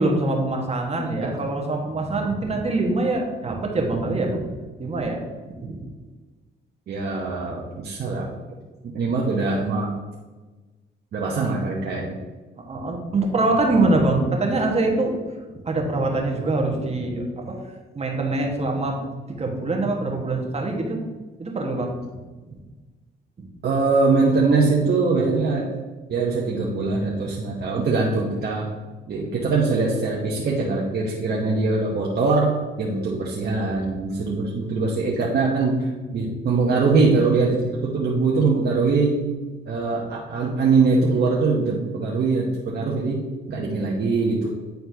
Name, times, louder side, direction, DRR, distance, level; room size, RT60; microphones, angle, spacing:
voice 1, 0.0-4.5 4.8-5.8 12.7-15.2 15.5-17.6 17.9-19.0 19.3-21.0 21.4-22.0, right 2 dB, 30° right, 1 dB, 1.4 m, -24 dB
voice 2, 6.9-8.3 8.8-9.9 11.1-12.2 23.6-25.7 26.1-28.7 29.1-39.2 39.7-44.5, right 3 dB, 55° right, -3 dB, 1.0 m, -22 dB
9.3 x 4.3 x 2.8 m, 1.3 s
cardioid pair, 90°, 20 cm